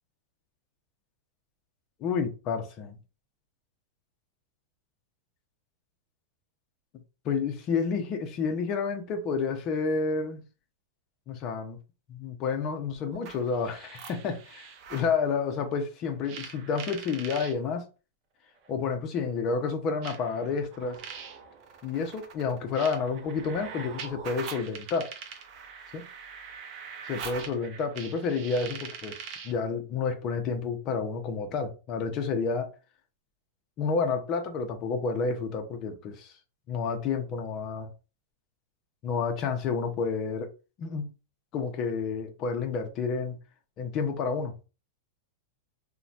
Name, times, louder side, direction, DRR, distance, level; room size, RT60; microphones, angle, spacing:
voice 1, 2.0-3.0 7.2-10.4 11.3-11.8 12.1-17.8 18.7-21.0 21.8-25.1 25.9-26.0 27.1-32.7 33.8-36.3 36.7-37.9 39.0-40.5 40.8-41.0 41.5-43.4 43.8-44.5, left 5 dB, 30° left, 0.5 m, -30 dB
sound 1, 13.1-15.1 16.2-17.5 18.6-18.7 20.0-29.6, right 6 dB, 35° right, 0.5 m, -43 dB
3.0 x 2.1 x 2.7 m
supercardioid pair, 160°, 0 cm